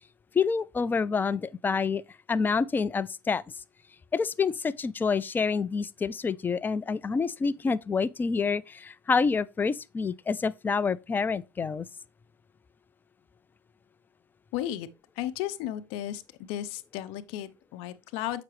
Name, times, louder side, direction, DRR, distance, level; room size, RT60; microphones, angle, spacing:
voice 1, 0.3-2.0 2.3-3.4 4.1-11.9, left 5 dB, 20° left, 0.4 m, -27 dB
voice 2, 14.5-14.9 15.2-16.2 16.5-18.4, left 12 dB, 65° left, 0.8 m, -34 dB
7.3 x 5.9 x 3.2 m
supercardioid pair, 100°, 11 cm